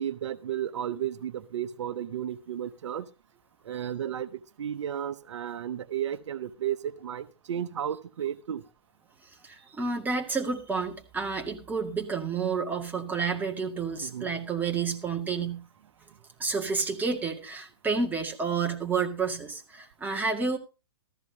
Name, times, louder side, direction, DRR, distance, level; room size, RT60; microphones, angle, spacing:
voice 1, 0.0-3.1 3.7-8.6 14.0-14.3, right 10 dB, 75° right, 13 dB, 0.8 m, -33 dB
voice 2, 9.4-15.6 16.4-20.6, right 5 dB, 10° right, 2 dB, 2.0 m, -30 dB
14.0 x 14.0 x 2.8 m, 0.30 s
hypercardioid pair, 130°, 15 cm